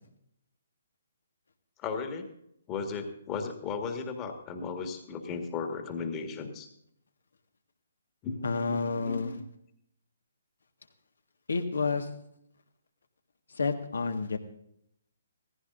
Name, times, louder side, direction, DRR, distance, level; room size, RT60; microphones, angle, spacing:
voice 1, 1.8-2.3 2.7-6.7 8.2-9.2, left 5 dB, 25° left, 5 dB, 1.9 m, -36 dB
voice 2, 8.4-9.4 11.5-12.1 13.6-14.4, left 4 dB, 70° left, 6 dB, 1.7 m, -29 dB
17.5 x 15.0 x 2.7 m, 0.73 s
figure-of-eight pair, 130°, 0 cm